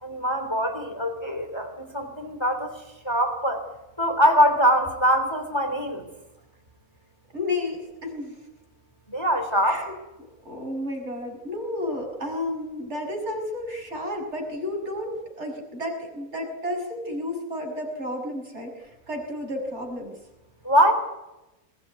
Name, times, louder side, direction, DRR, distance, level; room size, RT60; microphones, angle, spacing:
voice 1, 0.0-3.7 4.0-6.0 9.1-9.9 20.6-20.9, equal, 15° left, 5 dB, 3.2 m, -23 dB
voice 2, 7.3-8.5 9.6-9.9 10.4-20.2, left 1 dB, 50° right, 2 dB, 6.5 m, -32 dB
21.5 x 19.5 x 9.6 m, 0.98 s
omnidirectional pair, 1.6 m